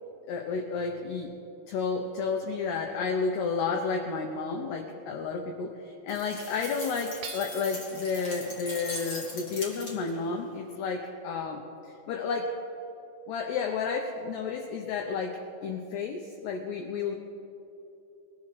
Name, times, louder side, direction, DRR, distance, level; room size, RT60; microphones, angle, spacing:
voice 1, 0.3-1.3 1.7-11.7 12.1-12.5 13.3-17.2, left 5 dB, 90° left, 3 dB, 2.3 m, -31 dB
sound 1, 6.1-10.3, left 2 dB, 45° left, 2.1 m, -41 dB
Hammer / Chink clink, 7.2-8.0, right 5 dB, 85° right, 3.2 m, -43 dB
22.0 x 14.0 x 3.2 m, 2.9 s
omnidirectional pair, 5.9 m